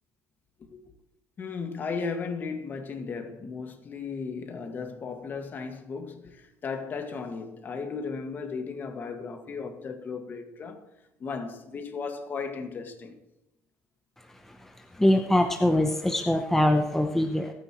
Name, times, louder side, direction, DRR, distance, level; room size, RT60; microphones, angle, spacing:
voice 1, 1.4-10.8 11.2-13.2, left 5 dB, 35° left, 2.0 m, -35 dB
voice 2, 15.0-17.5, left 1 dB, 5° left, 0.9 m, -23 dB
26.5 x 9.8 x 3.1 m
cardioid pair, 120°, 6 cm